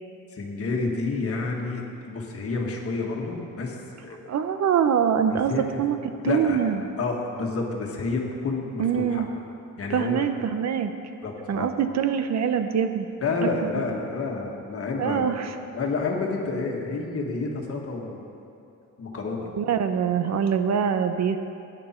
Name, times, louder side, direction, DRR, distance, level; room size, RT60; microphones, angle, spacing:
voice 1, 0.3-4.2 5.3-5.6 6.2-6.6 7.0-9.2 9.8-10.3 11.2-11.7 13.2-15.3 15.7-18.2 19.0-19.5, left 3 dB, 45° left, 0 dB, 1.6 m, -29 dB
voice 2, 4.3-6.0 6.3-6.8 8.8-9.3 9.9-10.9 11.5-13.1 15.0-15.5 19.5-21.4, right 8 dB, 55° right, 8 dB, 0.6 m, -24 dB
17.0 x 9.1 x 4.4 m, 2.7 s
wide cardioid pair, 170°, 32 cm